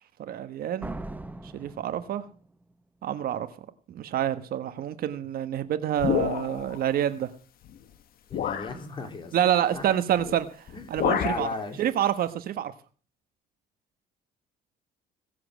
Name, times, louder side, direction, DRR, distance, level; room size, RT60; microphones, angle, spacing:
voice 1, 0.2-0.9 1.5-2.2 3.0-3.5 3.9-7.3 9.3-10.5 10.9-11.5 11.8-12.7, right 10 dB, 60° right, 11 dB, 1.2 m, -27 dB
Slam, 0.8-2.7, right 2 dB, 10° right, 0.8 m, -39 dB
sound 1, 6.0-6.8 7.7-7.8 8.3-8.8 10.2-10.4 10.7-11.5, left 10 dB, 60° left, 1.1 m, -28 dB
voice 2, 8.3-9.4 9.7-9.8 10.7-10.8 11.1-11.8, left 3 dB, 30° left, 5 dB, 3.0 m, -34 dB
17.5 x 7.6 x 6.2 m, 0.40 s
cardioid pair, 110°, 17 cm